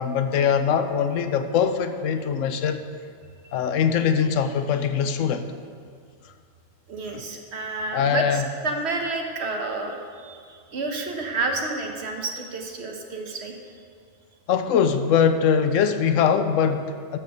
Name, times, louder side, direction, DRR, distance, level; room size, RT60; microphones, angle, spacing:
voice 1, 0.0-2.8 3.5-5.5 7.9-8.5 14.5-17.2, left 7 dB, 85° left, 9 dB, 1.0 m, -22 dB
voice 2, 6.9-13.5, right 3 dB, 60° right, 3 dB, 1.2 m, -30 dB
12.0 x 4.5 x 6.4 m, 2.1 s
omnidirectional pair, 1.3 m